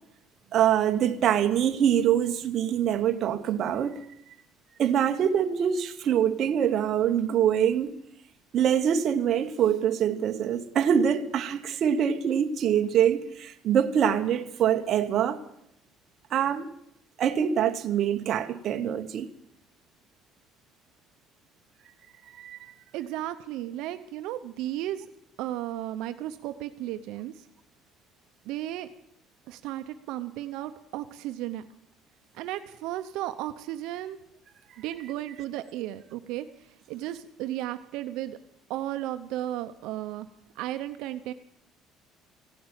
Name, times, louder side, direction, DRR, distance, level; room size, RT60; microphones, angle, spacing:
voice 1, 0.5-4.0 4.8-8.0 8.5-15.4 16.3-16.7 17.2-19.3 22.4-22.6, right 9 dB, 45° right, 1.0 m, -24 dB
voice 2, 22.9-25.1 25.4-27.5 28.4-28.9 29.5-31.7 32.3-34.2 34.8-38.4 38.7-40.3 40.5-41.3, right 13 dB, 75° right, 0.7 m, -34 dB
15.5 x 10.0 x 8.7 m
cardioid pair, 155°, 0 cm